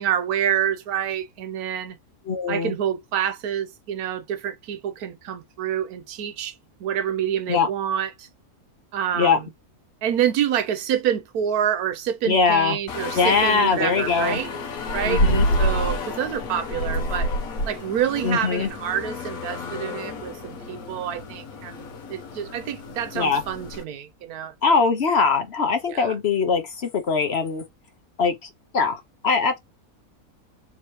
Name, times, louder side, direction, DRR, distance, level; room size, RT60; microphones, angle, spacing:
voice 1, 0.0-2.0 2.5-6.5 6.8-8.3 8.9-9.5 10.0-14.5 14.9-17.3 17.7-24.8 25.9-26.1, right 9 dB, 80° right, 1.2 m, -27 dB
voice 2, 2.3-2.7 7.5-7.7 9.1-9.4 12.2-12.8 13.1-14.4 15.0-15.5 18.2-18.7 23.1-23.4 24.6-27.6 28.2-29.6, left 5 dB, 50° left, 1.0 m, -22 dB
sound 1, 12.9-23.8, equal, 70° left, 1.3 m, -29 dB
3.5 x 2.9 x 4.5 m
omnidirectional pair, 1.6 m